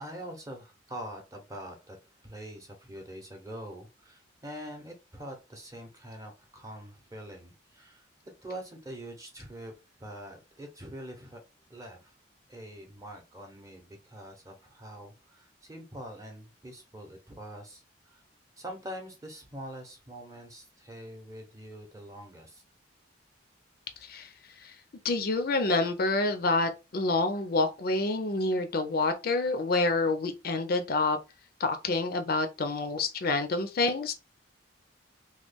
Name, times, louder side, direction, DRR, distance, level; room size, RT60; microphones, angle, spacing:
voice 1, 0.0-8.0 8.4-9.7 10.0-11.4 11.7-12.1 12.5-18.2 18.6-22.6, right 1 dB, 15° right, 0.7 m, -44 dB
voice 2, 25.0-31.2 31.6-34.1, left 3 dB, 50° left, 0.4 m, -27 dB
3.0 x 2.3 x 3.4 m
head